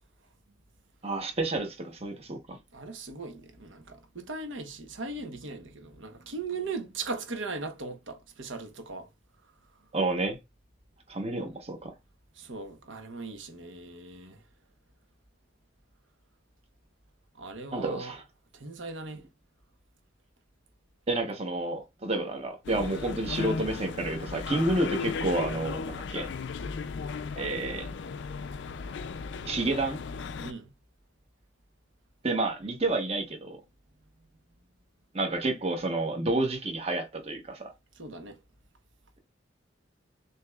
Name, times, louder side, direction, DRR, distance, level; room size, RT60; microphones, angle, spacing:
voice 1, 1.0-2.6 9.9-10.4 11.1-11.9 17.7-18.2 21.1-26.3 27.4-27.9 29.4-30.0 32.2-33.6 35.1-37.7, right 2 dB, 30° right, 0.9 m, -30 dB
voice 2, 2.7-9.1 12.3-14.4 17.4-18.1 18.5-19.2 30.4-30.7 38.0-38.4, right 3 dB, 85° right, 1.0 m, -39 dB
sound 1, 22.6-30.5, left 5 dB, 65° left, 0.4 m, -36 dB
6.6 x 2.9 x 2.3 m
head